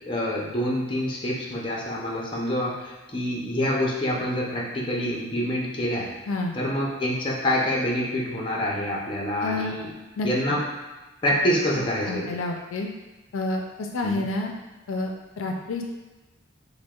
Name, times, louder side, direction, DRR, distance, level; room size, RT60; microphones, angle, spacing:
voice 1, 0.0-6.1 6.5-9.9 10.2-10.6 11.2-12.4 14.0-14.2, equal, 25° left, -3 dB, 0.6 m, -26 dB
voice 2, 9.4-9.7 10.2-10.3 12.1-12.9 13.3-14.5 14.9-15.8, left 2 dB, 75° left, 2 dB, 0.4 m, -29 dB
6.1 x 2.1 x 2.3 m, 1.2 s
head